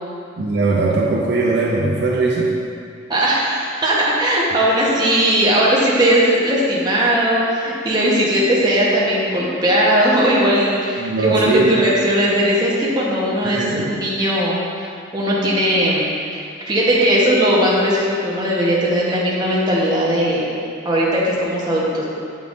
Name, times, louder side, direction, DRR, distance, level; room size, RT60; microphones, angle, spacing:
voice 1, 0.4-2.5 11.0-11.8 13.4-13.9, right 3 dB, 65° right, -3 dB, 0.6 m, -19 dB
voice 2, 3.1-16.1 16.6-20.4 20.8-22.1, equal, 25° right, -6 dB, 1.1 m, -18 dB
7.9 x 5.5 x 2.6 m, 2.4 s
head